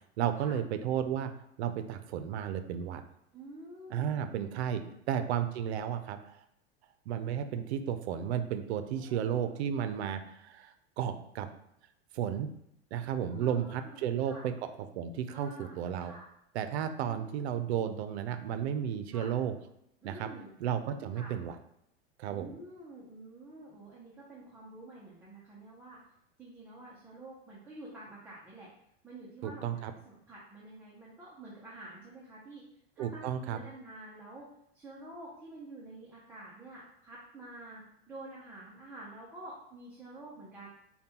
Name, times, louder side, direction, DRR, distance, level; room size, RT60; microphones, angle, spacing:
voice 1, 0.2-1.3 1.6-3.0 3.9-4.8 5.1-6.4 7.1-11.5 12.1-12.5 12.9-14.7 15.0-16.1 16.5-19.5 20.0-20.3 20.6-21.6 22.2-22.5 29.4-29.9 33.0-33.6, right 9 dB, 80° right, 9 dB, 0.5 m, -33 dB
voice 2, 3.3-5.0 9.0-9.6 9.9-10.0 13.3-14.5 15.3-16.2 17.0-17.3 19.1-19.3 20.0-20.5 21.1-21.3 22.3-26.0 26.4-28.7 29.0-29.7 30.3-32.6 33.0-40.7, right 2 dB, 5° right, -7 dB, 0.5 m, -49 dB
5.2 x 2.2 x 2.8 m, 0.77 s
supercardioid pair, 145°, 32 cm